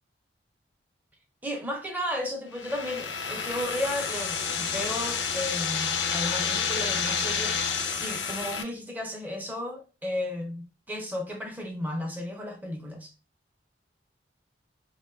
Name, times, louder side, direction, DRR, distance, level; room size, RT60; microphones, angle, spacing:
voice 1, 1.4-13.1, left 1 dB, 10° right, 0.5 m, -34 dB
sound 1, 2.5-8.6, left 6 dB, 70° left, 0.4 m, -29 dB
2.6 x 2.1 x 2.2 m
head